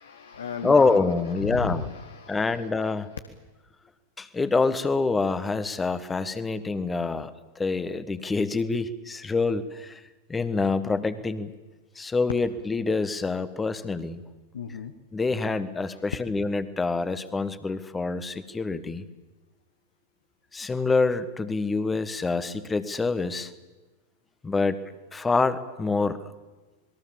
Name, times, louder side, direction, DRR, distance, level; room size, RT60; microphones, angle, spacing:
voice 1, 0.0-1.0 1.4-2.9 14.5-14.9 15.9-16.0, left 6 dB, 65° left, 8 dB, 1.5 m, -35 dB
voice 2, 0.6-1.9 2.3-3.2 4.2-10.0 10.3-11.5 11.9-14.2 15.1-19.0 20.5-23.5 24.4-24.8 25.1-26.2, left 3 dB, 15° left, 13 dB, 1.5 m, -26 dB
27.0 x 21.5 x 7.4 m, 1.2 s
figure-of-eight pair, 90°, 0 cm